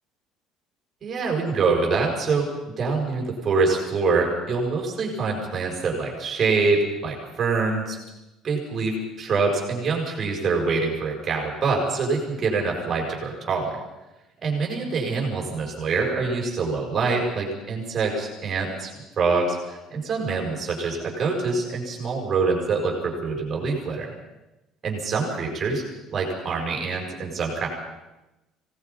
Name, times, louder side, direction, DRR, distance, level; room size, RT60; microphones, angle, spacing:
voice 1, 1.0-8.0 8.4-13.8 14.4-18.9 19.2-24.1 24.8-25.8 26.1-27.7, right 4 dB, 25° right, 0 dB, 6.6 m, -25 dB
27.0 x 19.0 x 5.6 m, 1.0 s
cardioid pair, 170°, 0 cm